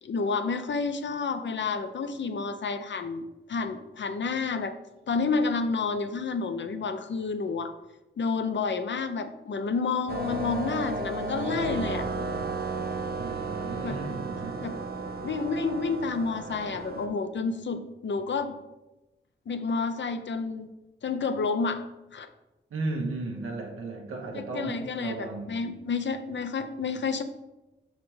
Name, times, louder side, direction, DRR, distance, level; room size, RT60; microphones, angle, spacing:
voice 1, 0.0-4.7 5.1-7.7 8.2-12.1 13.8-14.0 14.6-14.8 15.2-18.6 19.5-20.7 21.0-21.8 22.1-22.3 24.3-27.2, left 4 dB, 60° left, 9 dB, 0.6 m, -30 dB
sound 1, 10.1-17.1, right 3 dB, 50° right, 0.9 m, -33 dB
voice 2, 13.2-14.6 22.7-25.8, right 3 dB, 90° right, 1 dB, 1.2 m, -35 dB
5.9 x 4.2 x 4.9 m, 1.0 s
cardioid pair, 50°, 21 cm